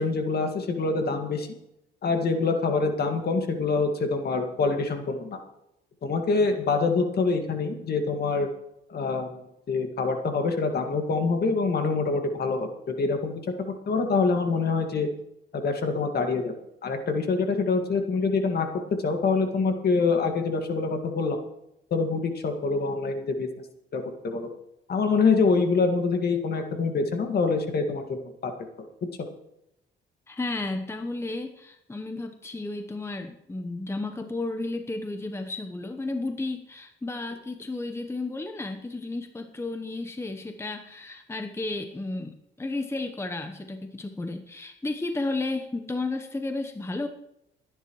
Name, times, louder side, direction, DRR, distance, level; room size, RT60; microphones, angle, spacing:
voice 1, 0.0-1.5 2.0-5.4 6.0-8.5 8.9-9.3 9.7-13.4 13.7-15.1 15.5-16.5 16.8-21.4 21.9-23.5 23.9-24.5 24.9-28.5 28.8-28.9, left 4 dB, 55° left, 5 dB, 2.0 m, -25 dB
voice 2, 30.3-47.1, left 2 dB, 15° left, 6 dB, 0.9 m, -33 dB
29.0 x 10.0 x 3.1 m, 0.85 s
cardioid pair, 90°, 20 cm